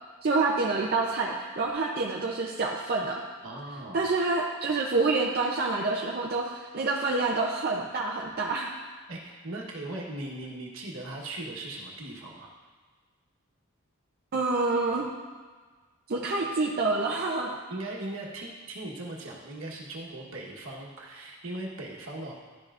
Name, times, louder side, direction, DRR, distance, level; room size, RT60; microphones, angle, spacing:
voice 1, 0.2-3.2 3.9-8.7 14.3-15.1 16.1-17.6, right 3 dB, 45° right, -3 dB, 0.6 m, -27 dB
voice 2, 3.4-4.1 9.1-12.5 17.7-22.3, right 1 dB, 70° right, -2 dB, 1.2 m, -39 dB
11.5 x 5.5 x 2.5 m, 1.4 s
head